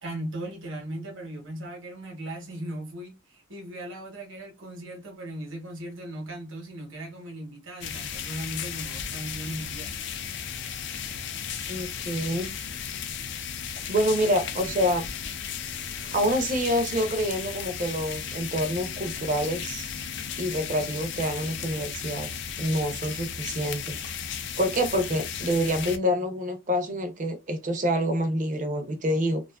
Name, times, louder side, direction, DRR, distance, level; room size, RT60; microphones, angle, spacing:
voice 1, 0.0-9.9, right 1 dB, 70° right, 0.9 m, -38 dB
sound 1, 7.8-26.0, left 7 dB, 60° left, 0.4 m, -35 dB
voice 2, 11.7-12.5 13.9-15.0 16.1-19.9 20.4-22.3 22.6-24.0 24.3-29.4, equal, 40° right, 0.5 m, -27 dB
2.5 x 2.4 x 2.2 m
head